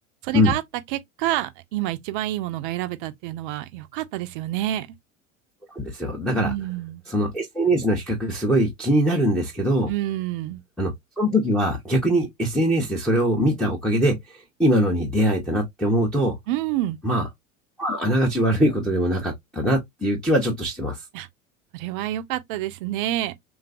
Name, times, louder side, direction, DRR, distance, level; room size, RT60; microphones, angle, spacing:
voice 1, 0.2-0.6 0.9-4.9 6.4-7.0 9.9-10.6 16.5-17.0 21.1-21.3 21.7-23.3, right 14 dB, 45° right, 0.4 m, -28 dB
voice 2, 5.7-6.5 7.1-9.9 10.8-10.9 11.2-16.4 17.0-17.3 17.8-21.0, equal, ahead, 0.6 m, -22 dB
3.1 x 2.3 x 2.4 m
figure-of-eight pair, 80°, 39 cm